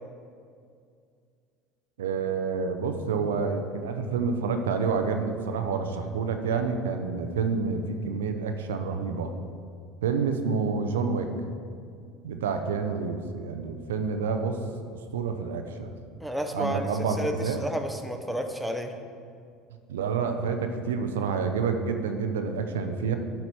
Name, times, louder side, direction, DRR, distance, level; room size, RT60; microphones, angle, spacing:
voice 1, 2.0-9.3 10.0-11.3 12.2-14.6 14.9-15.9 16.5-17.6 19.9-23.2, right 5 dB, 80° right, 6 dB, 0.4 m, -28 dB
voice 2, 16.2-16.9 17.2-18.9, equal, ahead, 4 dB, 0.7 m, -31 dB
7.9 x 4.2 x 4.6 m, 2.3 s
hypercardioid pair, 70°, 0 cm